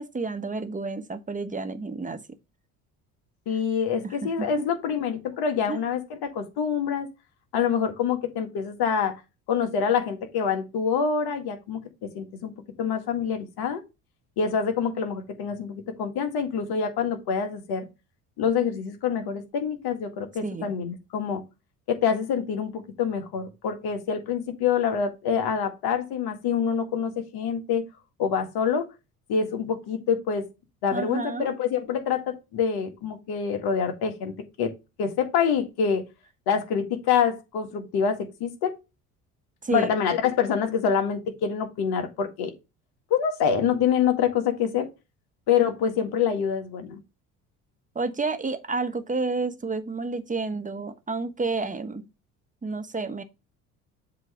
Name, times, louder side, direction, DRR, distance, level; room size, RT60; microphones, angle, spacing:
voice 1, 0.0-2.2 4.0-4.5 5.7-5.8 20.4-20.7 30.9-31.5 39.6-39.9 47.9-52.0 52.6-53.2, right 3 dB, 20° right, 1.3 m, -30 dB
voice 2, 3.5-7.1 7.5-9.1 9.5-11.8 12.1-12.5 12.8-13.8 14.4-17.9 18.4-21.4 21.9-27.8 28.2-28.9 29.3-30.5 30.8-34.7 35.0-36.0 36.5-38.7 39.7-42.5 43.1-44.9 45.5-47.0, left 7 dB, 60° left, 1.9 m, -26 dB
7.5 x 3.2 x 5.1 m
hypercardioid pair, 60°, 43 cm